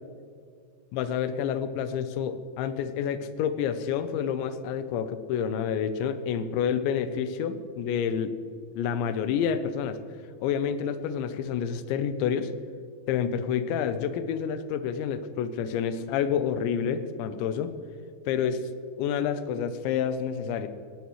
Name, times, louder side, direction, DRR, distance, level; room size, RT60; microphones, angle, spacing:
voice 1, 0.9-8.3 8.7-10.0 10.4-12.5 13.1-17.7 18.3-18.6 19.0-20.7, left 8 dB, 85° left, 11 dB, 3.1 m, -28 dB
19.0 x 15.0 x 3.2 m, 2.3 s
omnidirectional pair, 5.2 m